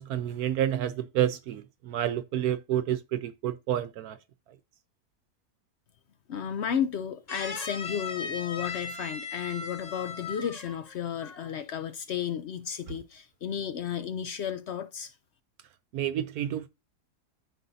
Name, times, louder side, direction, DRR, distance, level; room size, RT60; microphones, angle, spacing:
voice 1, 0.0-4.2 15.9-16.7, right 11 dB, 75° right, 1.1 m, -29 dB
voice 2, 6.3-15.1, left 8 dB, 65° left, 0.6 m, -33 dB
sound 1, 7.3-10.9 11.2-11.6, left 4 dB, 30° left, 0.8 m, -38 dB
13.5 x 4.6 x 2.6 m
omnidirectional pair, 1.7 m